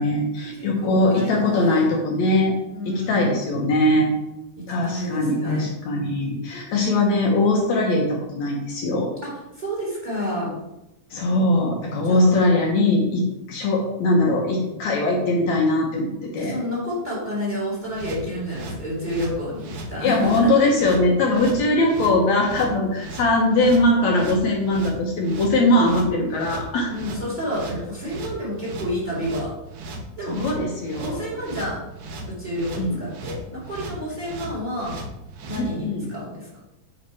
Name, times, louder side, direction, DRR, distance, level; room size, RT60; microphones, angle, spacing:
voice 1, 0.0-2.5 2.9-4.1 4.7-9.1 11.1-16.6 20.0-26.9 30.3-31.2 32.8-33.1 35.6-36.1, left 1 dB, 70° left, -1 dB, 2.2 m, -21 dB
voice 2, 0.5-1.9 2.7-3.3 4.6-5.7 9.2-10.5 12.0-12.3 16.4-20.5 26.9-29.5 30.2-30.4 31.0-31.8 32.3-35.0 35.5-36.6, equal, 15° right, -5 dB, 2.5 m, -29 dB
sound 1, 17.9-35.7, right 2 dB, 65° right, 1.9 m, -37 dB
8.7 x 4.0 x 4.7 m, 0.92 s
omnidirectional pair, 3.6 m